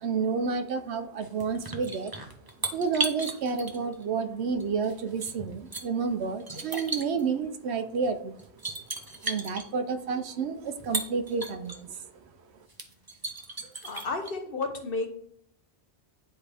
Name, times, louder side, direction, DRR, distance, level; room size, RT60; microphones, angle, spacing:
voice 1, 0.0-2.1 2.7-8.4 9.2-12.0, right 5 dB, 75° right, 9 dB, 1.0 m, -30 dB
sound 1, 1.2-4.0 4.6-5.8 6.4-7.2 8.0-8.1 8.4-9.7 10.7-11.8 12.3-12.4 12.7-14.3, right 2 dB, 20° right, 0.8 m, -35 dB
voice 2, 13.8-15.1, left 3 dB, 55° left, 5 dB, 1.2 m, -32 dB
9.7 x 4.4 x 3.4 m, 0.65 s
omnidirectional pair, 1.1 m